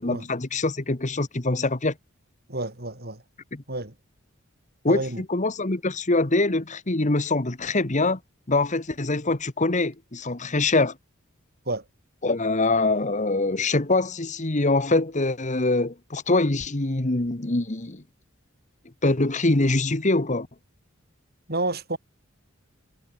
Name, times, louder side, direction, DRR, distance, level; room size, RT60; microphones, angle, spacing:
voice 1, 0.0-1.9 3.5-3.6 4.8-8.2 8.5-10.9 12.2-18.0 19.0-20.5, left 2 dB, 35° left, 1.4 m, -24 dB
voice 2, 2.5-3.2 3.7-3.9 4.9-5.2 11.7-11.8 21.5-22.0, right 2 dB, 50° right, 7.1 m, -29 dB
head